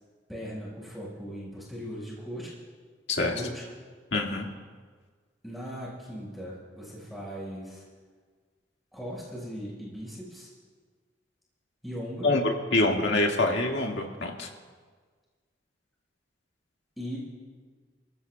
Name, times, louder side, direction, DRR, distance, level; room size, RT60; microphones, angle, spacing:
voice 1, 0.3-2.5 3.2-3.6 5.4-7.8 8.9-10.5 11.8-12.3 17.0-17.2, equal, ahead, -6 dB, 5.1 m, -38 dB
voice 2, 3.1-3.4 4.1-4.5 12.2-14.5, left 2 dB, 75° left, 1 dB, 1.9 m, -25 dB
29.0 x 15.5 x 2.3 m, 1.5 s
head